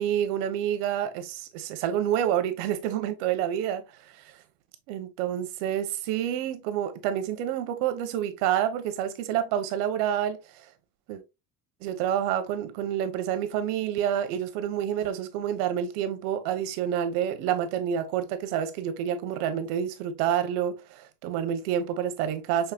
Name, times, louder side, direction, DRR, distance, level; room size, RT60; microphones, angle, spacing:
voice 1, 0.0-4.3 4.9-10.7 11.1-11.2 11.8-22.7, right 10 dB, 85° right, 1.0 m, -28 dB
5.7 x 3.1 x 2.3 m
cardioid pair, 175°, 44 cm